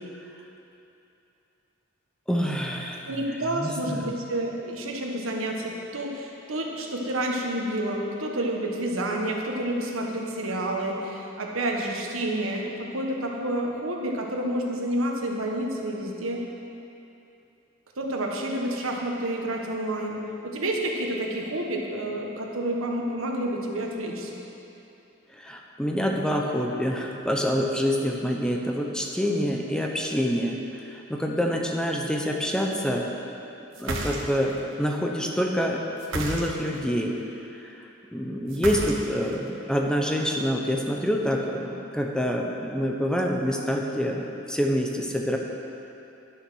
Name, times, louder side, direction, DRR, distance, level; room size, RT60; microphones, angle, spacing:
voice 1, 2.3-3.0 3.6-4.1 25.3-33.1 33.8-35.8 36.1-37.1 37.5-37.8 38.1-45.4, equal, 5° left, 0 dB, 0.8 m, -26 dB
voice 2, 3.1-16.5 18.0-24.4, right 1 dB, 90° right, 0 dB, 1.4 m, -29 dB
sound 1, 33.7-34.6 36.0-36.8 38.5-39.3, right 2 dB, 65° right, 1.3 m, -31 dB
11.5 x 7.1 x 6.3 m, 2.8 s
head